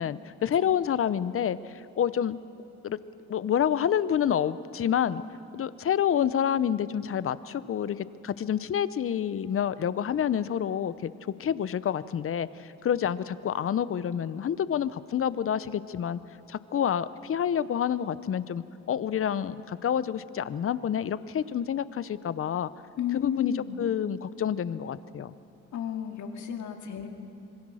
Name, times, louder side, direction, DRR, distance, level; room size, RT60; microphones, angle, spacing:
voice 1, 0.0-2.4 2.8-3.0 3.3-5.2 5.5-11.1 11.4-16.2 16.5-22.7 23.1-25.3, left 9 dB, 45° left, 16 dB, 0.8 m, -28 dB
voice 2, 23.0-23.9 25.7-27.1, left 9 dB, 70° left, 4 dB, 2.5 m, -32 dB
26.5 x 22.0 x 6.4 m, 2.9 s
cardioid pair, 90°, 30 cm